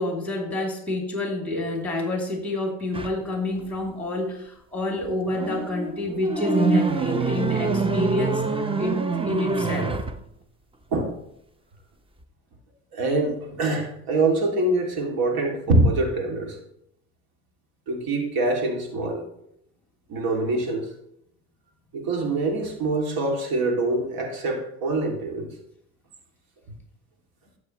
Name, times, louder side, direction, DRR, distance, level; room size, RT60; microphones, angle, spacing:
voice 1, 0.0-8.4 8.8-9.9, left 2 dB, 5° left, 1 dB, 3.0 m, -28 dB
sound 1, 2.9-3.2 5.0-10.2, right 3 dB, 15° right, 0.8 m, -25 dB
voice 2, 12.9-16.6 17.9-19.3 20.1-20.9 21.9-25.5, right 2 dB, 65° right, 2 dB, 2.6 m, -24 dB
12.0 x 7.9 x 3.1 m, 0.74 s
supercardioid pair, 80°, 40 cm